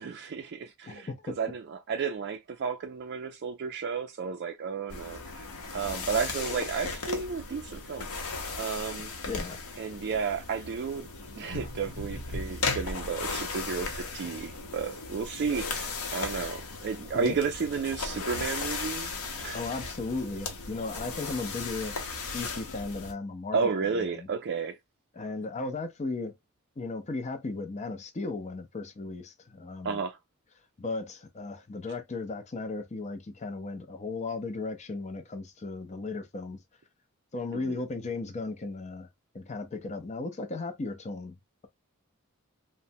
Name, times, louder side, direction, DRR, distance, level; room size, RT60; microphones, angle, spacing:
voice 1, 0.0-5.5 5.7-8.1 8.5-9.1 9.8-11.1 11.4-19.1 19.4-19.6 23.5-24.8 29.8-30.2 37.5-37.8, right 5 dB, 50° right, 0.4 m, -32 dB
voice 2, 0.9-1.4 9.3-9.6 17.1-17.4 19.5-22.0 22.3-24.3 25.1-26.3 26.8-30.0 30.8-36.6 37.3-39.1 39.3-41.4, left 3 dB, 30° left, 0.5 m, -36 dB
sound 1, 4.9-23.1, left 4 dB, 80° left, 0.8 m, -36 dB
3.1 x 2.1 x 2.6 m
head